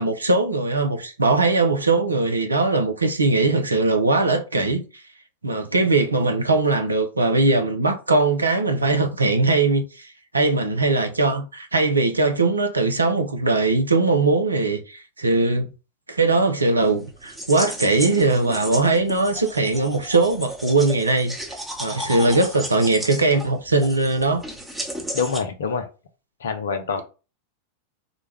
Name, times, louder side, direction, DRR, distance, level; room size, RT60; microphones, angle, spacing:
voice 1, 0.0-4.8 5.4-15.7 16.1-21.4 21.8-24.4, right 3 dB, 80° right, 0.6 m, -20 dB
sound 1, 16.8-25.4, right 1 dB, ahead, 0.9 m, -34 dB
voice 2, 25.1-25.9 26.4-27.0, left 5 dB, 65° left, 0.5 m, -25 dB
3.9 x 2.2 x 3.3 m
figure-of-eight pair, 90°, 0 cm